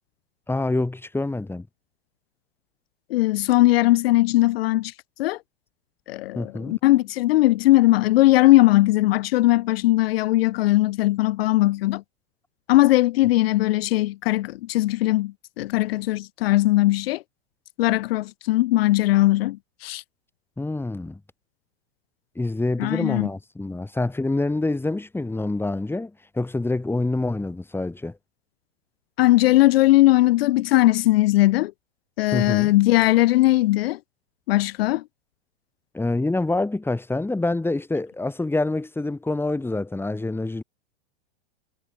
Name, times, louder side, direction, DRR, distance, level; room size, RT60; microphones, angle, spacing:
voice 1, 0.5-1.7 6.3-6.8 20.6-21.2 22.3-28.2 32.3-32.7 35.9-40.6, left 2 dB, 5° left, 4.6 m, -26 dB
voice 2, 3.1-4.9 5.2-5.4 6.1-12.0 12.7-17.2 17.8-20.0 22.8-23.3 29.2-31.7 32.2-34.0 34.5-35.0, left 17 dB, 70° left, 1.1 m, -19 dB
hypercardioid pair, 115°, 31 cm